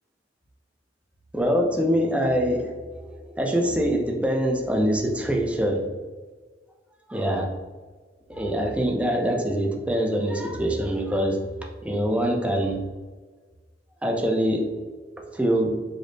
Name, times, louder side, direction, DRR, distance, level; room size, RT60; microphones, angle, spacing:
voice 1, 1.3-5.9 7.1-7.5 8.3-11.4 11.8-12.8 14.0-14.7 15.2-15.8, equal, 5° right, 1 dB, 0.4 m, -24 dB
4.9 x 2.0 x 2.6 m, 1.4 s
head